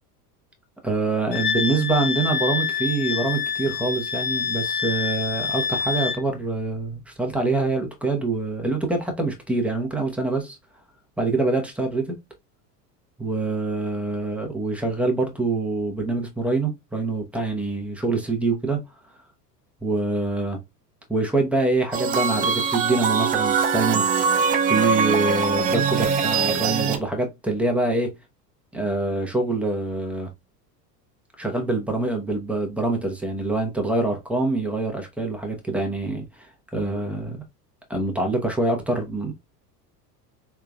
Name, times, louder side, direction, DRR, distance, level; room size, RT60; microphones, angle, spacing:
voice 1, 0.8-10.6 11.2-12.1 13.2-18.8 19.8-20.6 21.1-24.0 24.4-28.1 28.7-30.3 31.4-37.4 37.9-39.3, right 3 dB, 5° right, 0.9 m, -25 dB
Wind instrument woodwind instrument, 1.3-6.2, left 6 dB, 70° left, 0.9 m, -26 dB
sound 1, 21.9-27.0, right 5 dB, 20° right, 0.3 m, -22 dB
3.7 x 3.4 x 2.3 m
hypercardioid pair, 90°, 50 cm